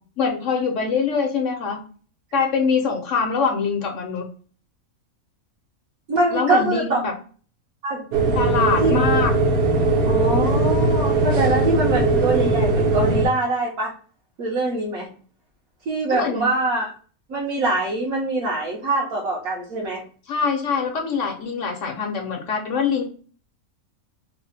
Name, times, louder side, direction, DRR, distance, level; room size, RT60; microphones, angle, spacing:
voice 1, 0.2-1.8 2.3-4.3 6.3-7.1 8.4-9.3 16.1-16.5 20.3-23.0, left 5 dB, 65° left, 2 dB, 1.0 m, -23 dB
voice 2, 6.1-7.0 7.8-8.1 8.8-9.0 10.0-13.9 14.4-15.1 15.9-16.9 17.3-20.0, right 2 dB, 75° right, -5 dB, 1.4 m, -23 dB
sound 1, 8.1-13.3, right 2 dB, 55° right, 0.8 m, -19 dB
3.4 x 2.1 x 3.9 m, 0.42 s
omnidirectional pair, 1.5 m